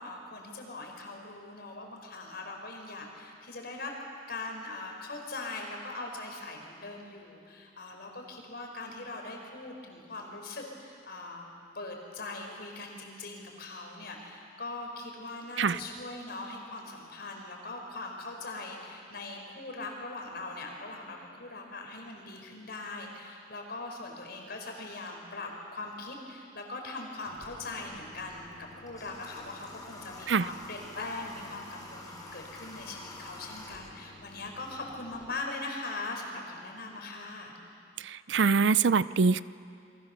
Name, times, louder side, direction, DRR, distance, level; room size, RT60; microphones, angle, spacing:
voice 1, 0.0-11.5 11.7-37.5, left 2 dB, 60° left, 2 dB, 4.7 m, -41 dB
Water / Water tap faucet, 27.3-35.3, left 2 dB, 20° left, 5.7 m, -48 dB
voice 2, 38.3-39.4, right 5 dB, 70° right, 17 dB, 0.5 m, -23 dB
28.5 x 22.5 x 7.0 m, 2.4 s
head